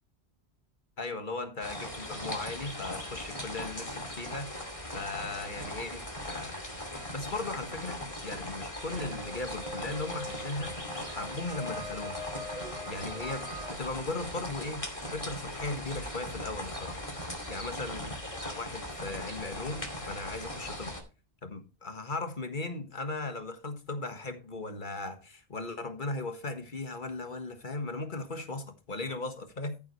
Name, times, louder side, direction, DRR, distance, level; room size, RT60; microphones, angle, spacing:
voice 1, 1.0-4.6 4.9-6.6 7.1-10.8 11.1-12.2 12.9-14.9 15.1-17.0 17.5-21.0 21.4-29.8, left 3 dB, 45° left, 1.7 m, -37 dB
sound 1, 1.6-21.0, left 1 dB, 30° left, 2.6 m, -39 dB
sound 2, 8.7-13.8, equal, ahead, 3.7 m, -43 dB
14.0 x 7.7 x 3.2 m
omnidirectional pair, 1.1 m